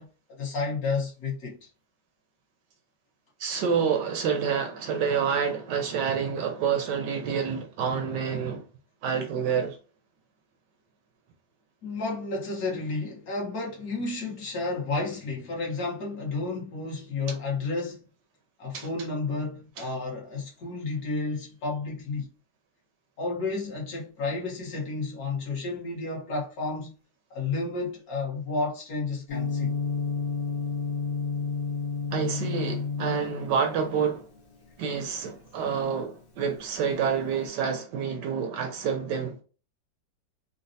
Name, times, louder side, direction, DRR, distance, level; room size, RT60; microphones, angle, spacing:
voice 1, 0.0-1.7 11.8-18.0 18.6-22.3 23.2-26.9 27.3-29.7, left 3 dB, 55° left, 1.3 m, -31 dB
voice 2, 3.4-8.6 9.0-9.8 18.7-18.9 19.8-19.9 32.1-34.3 34.8-39.4, right 6 dB, 75° right, 1.1 m, -28 dB
Gong, 29.3-37.4, left 5 dB, 75° left, 1.5 m, -32 dB
4.0 x 2.0 x 2.6 m
omnidirectional pair, 2.1 m